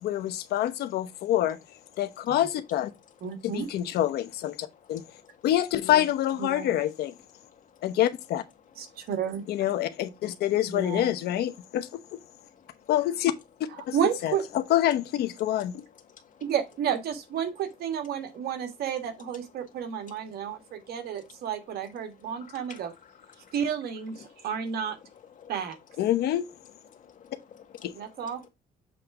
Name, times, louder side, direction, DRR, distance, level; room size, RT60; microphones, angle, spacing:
voice 1, 0.0-1.6 2.0-2.9 3.4-5.0 5.4-7.1 7.8-8.4 9.5-12.0 12.9-13.3 13.9-14.0 14.2-15.7 26.0-26.5 27.8-27.9, left 12 dB, 70° left, 1.0 m, -26 dB
voice 2, 3.2-3.7 6.4-6.7 8.8-9.5 10.7-11.1 13.8-14.5 16.4-22.9 23.5-25.0 25.5-25.8 27.9-28.5, right 8 dB, 65° right, 1.6 m, -31 dB
voice 3, 5.0-5.3 7.4-7.6 8.9-9.0 12.4-12.9 16.2-16.4 22.5-22.8 23.4-23.5 24.2-24.4 25.4-25.5 26.9-28.1, left 8 dB, 50° left, 1.8 m, -53 dB
7.6 x 3.4 x 4.8 m
cardioid pair, 110°, 17 cm